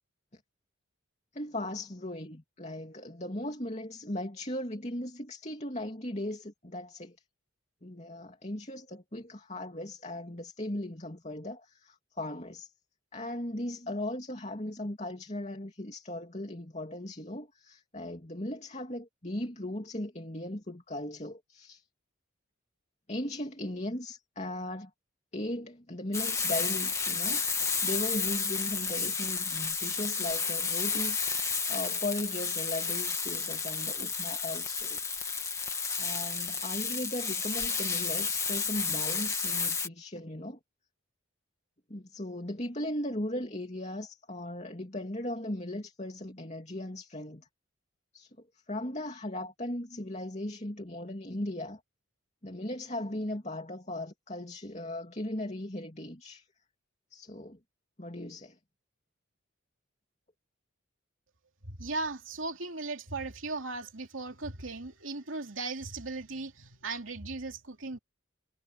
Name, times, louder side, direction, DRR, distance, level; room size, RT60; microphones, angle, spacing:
voice 1, 1.3-7.2 7.8-12.7 13.1-21.8 23.1-24.9 25.3-35.0 36.0-40.6 41.9-47.5 48.1-48.3 48.7-51.8 52.4-56.5 57.1-57.6 58.0-58.6, left 1 dB, 30° left, 2.9 m, -37 dB
Frying (food), 26.1-39.9, left 5 dB, 15° left, 1.8 m, -31 dB
voice 2, 61.6-68.0, right 3 dB, 70° right, 2.8 m, -37 dB
head